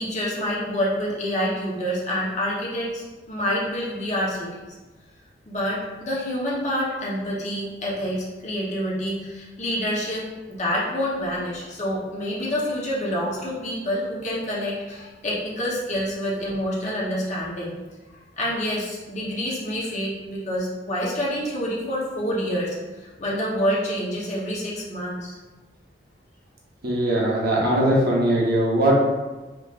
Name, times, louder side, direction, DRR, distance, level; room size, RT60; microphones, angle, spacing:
voice 1, 0.0-4.6 5.5-17.7 18.4-25.3, equal, 40° left, -6 dB, 1.1 m, -27 dB
voice 2, 26.8-28.9, right 1 dB, 60° right, -4 dB, 1.1 m, -20 dB
5.0 x 3.2 x 2.5 m, 1.2 s
head